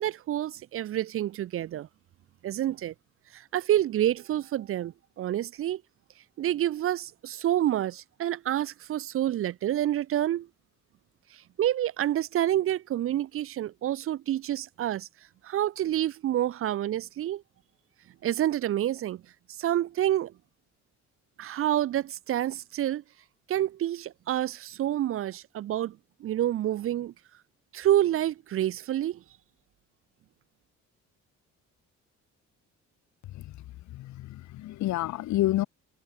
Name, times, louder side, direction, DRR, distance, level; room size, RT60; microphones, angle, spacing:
voice 1, 0.0-1.9 2.4-2.9 3.3-5.8 6.4-10.5 11.3-15.1 15.4-17.4 18.2-19.2 19.6-20.3 21.4-23.0 23.5-27.1 27.7-29.2, right 12 dB, 50° right, 0.4 m, -28 dB
voice 2, 33.9-35.7, left 15 dB, 70° left, 0.6 m, -29 dB
cardioid pair, 90°, 30 cm